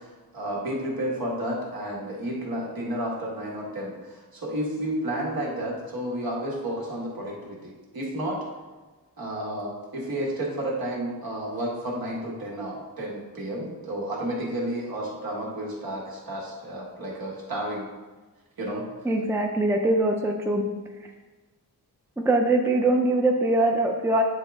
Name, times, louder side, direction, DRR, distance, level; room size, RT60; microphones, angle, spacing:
voice 1, 0.0-8.4 9.2-17.9 18.6-18.9, right 1 dB, 70° right, -3 dB, 1.8 m, -31 dB
voice 2, 19.1-20.6 22.3-24.2, right 2 dB, 5° right, 2 dB, 0.5 m, -22 dB
9.1 x 3.8 x 3.6 m, 1.3 s
wide cardioid pair, 155°, 37 cm